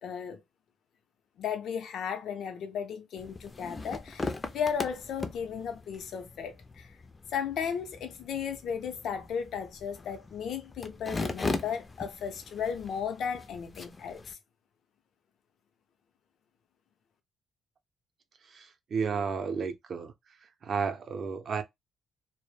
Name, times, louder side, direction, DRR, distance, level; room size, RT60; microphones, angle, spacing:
voice 1, 0.0-0.4 1.4-6.9 7.3-14.4, left 7 dB, 70° left, 0.6 m, -35 dB
sound 1, 3.2-14.3, left 3 dB, 30° left, 0.4 m, -39 dB
voice 2, 18.5-20.1 20.6-21.6, right 5 dB, 55° right, 0.5 m, -32 dB
2.1 x 2.1 x 3.1 m
cardioid pair, 90°, 0 cm